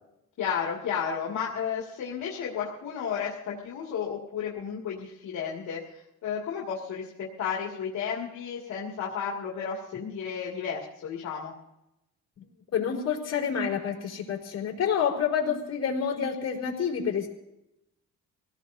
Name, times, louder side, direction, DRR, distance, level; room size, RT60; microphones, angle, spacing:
voice 1, 0.4-11.5, left 7 dB, 75° left, -3 dB, 2.3 m, -33 dB
voice 2, 12.7-17.3, left 7 dB, 55° left, -1 dB, 4.3 m, -28 dB
25.5 x 17.5 x 2.7 m, 0.89 s
cardioid pair, 90°, 30 cm